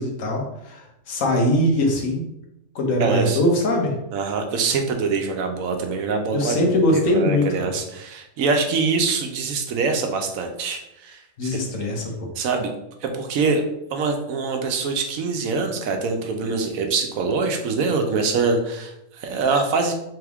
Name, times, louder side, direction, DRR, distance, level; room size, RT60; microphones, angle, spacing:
voice 1, 0.0-2.2 2.7-3.9 6.3-7.5 11.4-12.0, left 1 dB, 75° left, 1 dB, 1.3 m, -21 dB
voice 2, 3.0-3.4 4.1-6.6 6.9-11.6 12.4-12.7 13.0-13.6 13.9-19.9, right 4 dB, 85° right, 4 dB, 1.1 m, -24 dB
3.6 x 3.5 x 3.4 m, 0.86 s
omnidirectional pair, 1.4 m